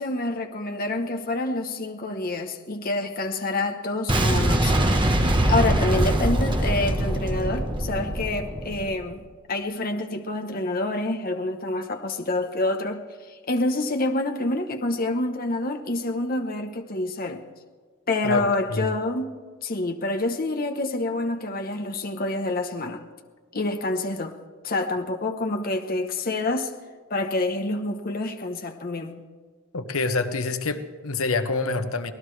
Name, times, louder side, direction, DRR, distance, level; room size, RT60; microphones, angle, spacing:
voice 1, 0.0-4.7 5.5-17.5 18.1-19.3 19.6-23.0 23.5-24.3 24.6-26.7 27.1-29.2, left 2 dB, 45° left, 0.9 m, -27 dB
Boom, 4.1-9.0, right 1 dB, 20° right, 1.2 m, -23 dB
voice 2, 29.7-32.1, left 3 dB, 80° left, 1.0 m, -26 dB
24.5 x 18.0 x 3.3 m
head